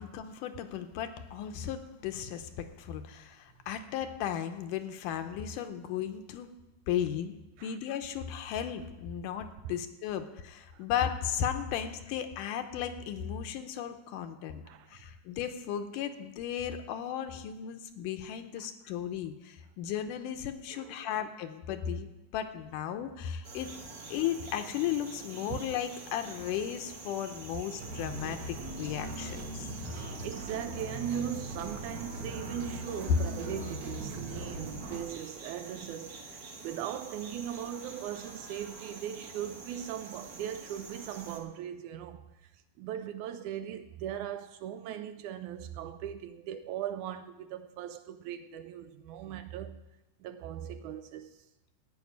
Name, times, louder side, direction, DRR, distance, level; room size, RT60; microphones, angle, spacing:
voice 1, 0.0-6.5 6.9-7.3 7.6-14.6 14.9-23.8 24.1-29.7, left 9 dB, 80° left, 2.3 m, -35 dB
voice 2, 14.7-15.0 18.6-18.7 20.7-20.9 25.5-25.6 29.9-30.0 30.2-49.8 50.2-51.4, right 10 dB, 80° right, 1.9 m, -39 dB
sound 1, 23.4-41.4, right 3 dB, 40° right, 1.3 m, -47 dB
sound 2, 27.8-35.1, right 1 dB, 60° right, 2.5 m, -40 dB
14.5 x 5.3 x 9.4 m
omnidirectional pair, 3.7 m